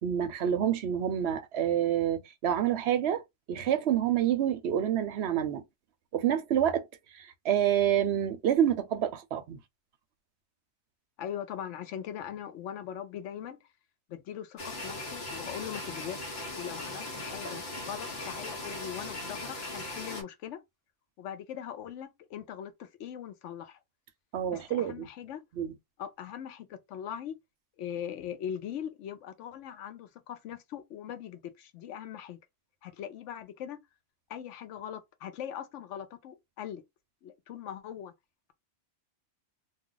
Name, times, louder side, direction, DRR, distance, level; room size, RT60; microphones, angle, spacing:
voice 1, 0.0-3.2 3.5-5.6 6.1-6.9 7.1-9.6 24.3-25.1 25.6-25.7, right 10 dB, 65° right, 0.8 m, -28 dB
voice 2, 11.2-13.6 14.1-20.6 21.2-23.8 24.5-25.4 26.0-27.4 27.8-32.4 32.8-33.8 34.3-36.8 37.2-38.1, left 9 dB, 85° left, 0.9 m, -40 dB
sound 1, 14.6-20.2, left 2 dB, 60° left, 1.0 m, -39 dB
2.3 x 2.3 x 3.8 m
omnidirectional pair, 1.2 m